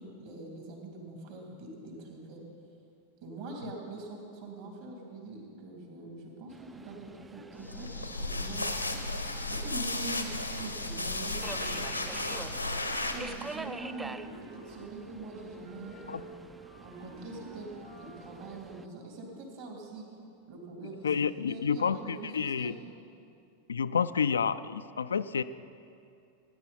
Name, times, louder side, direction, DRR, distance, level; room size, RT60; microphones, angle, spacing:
voice 1, 0.0-2.4 3.2-9.0 9.5-12.3 13.1-16.3 16.8-17.7 18.0-20.1 20.5-21.1 21.5-22.8, right 2 dB, 50° right, -1 dB, 3.2 m, -44 dB
Subway metro underground, 6.5-18.9, right 3 dB, 10° right, 0.4 m, -47 dB
sound 1, 7.6-13.5, left 2 dB, 85° left, 1.0 m, -34 dB
Wind instrument woodwind instrument, 12.8-15.0 15.3-18.4, right 3 dB, 75° right, 3.1 m, -51 dB
voice 2, 21.0-22.7 23.7-25.4, left 6 dB, 70° left, 13 dB, 0.3 m, -29 dB
18.0 x 10.0 x 4.2 m, 2.5 s
figure-of-eight pair, 90°, 0 cm